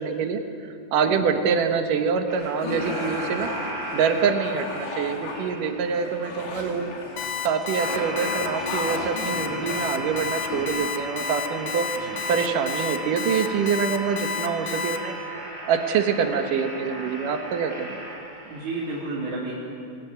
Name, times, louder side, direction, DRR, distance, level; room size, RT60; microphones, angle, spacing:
voice 1, 0.0-3.5 3.9-6.9 7.4-11.9 12.3-15.1 15.7-18.0, right 6 dB, 85° right, 6 dB, 3.0 m, -25 dB
sound 1, 2.3-19.0, right 1 dB, 40° right, 6.1 m, -37 dB
sound 2, 2.4-10.7, left 3 dB, 90° left, 4.1 m, -35 dB
Alarm, 7.2-15.0, left 7 dB, 65° left, 2.6 m, -30 dB
voice 2, 18.4-19.5, right 2 dB, 65° right, -7 dB, 4.4 m, -32 dB
23.5 x 16.5 x 9.3 m, 2.5 s
omnidirectional pair, 3.7 m